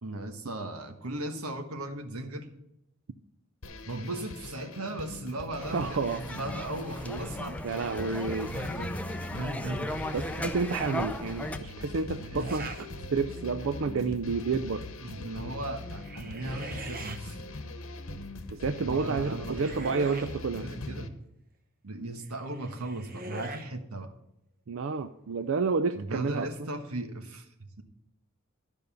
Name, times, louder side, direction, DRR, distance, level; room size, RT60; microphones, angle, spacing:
voice 1, 0.0-2.5 3.9-7.6 8.5-8.9 9.3-9.9 12.2-12.8 15.0-17.4 18.8-19.9 20.6-21.1 21.8-24.1 26.0-27.5, right 1 dB, 90° right, 6 dB, 1.3 m, -37 dB
sound 1, 3.6-21.1, left 2 dB, 70° left, 1.0 m, -41 dB
sound 2, 5.6-11.6, left 1 dB, 5° left, 0.5 m, -37 dB
voice 2, 5.7-6.2 7.6-8.5 10.1-12.7 13.1-14.9 18.5-20.7 24.7-26.5, right 4 dB, 60° right, 9 dB, 0.5 m, -30 dB
sound 3, 12.4-12.9 13.4-13.8 15.8-17.2 18.9-20.4 22.3-23.7, right 2 dB, 45° right, 1.0 m, -42 dB
12.5 x 5.4 x 6.9 m, 0.83 s
head